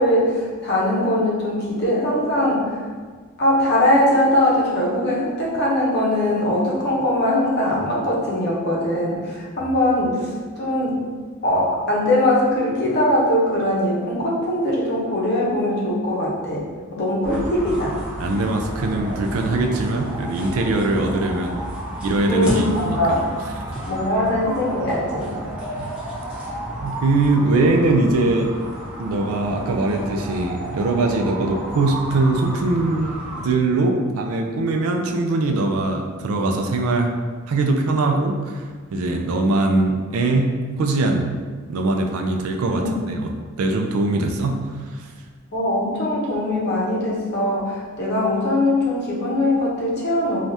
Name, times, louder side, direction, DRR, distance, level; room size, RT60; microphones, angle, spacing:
voice 1, 0.0-2.7 3.4-10.3 10.6-11.0 11.4-16.6 16.9-18.0 22.3-23.2 23.9-25.3 42.7-42.9 45.5-50.4, left 1 dB, 50° left, -5 dB, 0.7 m, -21 dB
sound 1, 17.2-33.4, right 1 dB, 5° right, 0.7 m, -32 dB
voice 2, 18.2-21.6 22.0-23.2 25.8-25.9 26.8-28.5 29.0-33.1 33.3-37.1 37.5-38.6 38.9-41.3 41.7-44.6 44.9-45.0, right 2 dB, 80° right, 3 dB, 0.4 m, -21 dB
3.3 x 2.3 x 2.7 m, 1.5 s
head